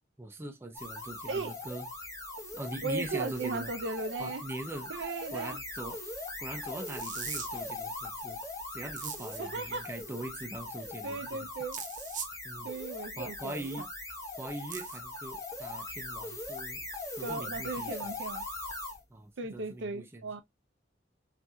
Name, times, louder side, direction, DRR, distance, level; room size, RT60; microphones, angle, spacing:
voice 1, 0.2-1.9 2.5-3.7 4.2-4.9 5.3-6.0 6.4-8.4 8.7-11.5 12.4-12.7 13.2-13.9 14.4-16.8 17.1-18.1 19.1-20.4, right 1 dB, 15° right, 0.5 m, -41 dB
sound 1, 0.7-19.0, left 2 dB, 15° left, 1.0 m, -41 dB
voice 2, 2.8-4.4 4.9-5.6 9.4-9.9 11.0-11.8 12.6-13.9 17.2-18.4 19.4-20.4, right 3 dB, 80° right, 0.6 m, -36 dB
sound 2, 6.9-7.5 9.0-9.4 11.7-12.3 14.7-15.0, right 8 dB, 45° right, 0.7 m, -40 dB
4.1 x 2.5 x 2.3 m
head